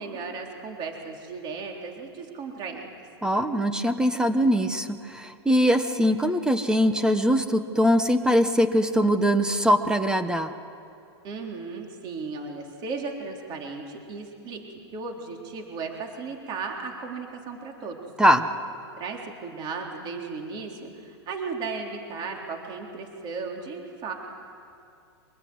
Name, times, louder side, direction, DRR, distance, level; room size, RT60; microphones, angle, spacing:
voice 1, 0.0-2.9 11.2-14.6 14.9-18.0 19.0-24.1, right 4 dB, 30° right, 1 dB, 3.6 m, -35 dB
voice 2, 3.2-10.5 18.2-18.5, equal, 5° right, 9 dB, 1.0 m, -22 dB
24.5 x 20.0 x 9.5 m, 2.5 s
hypercardioid pair, 140°, 14 cm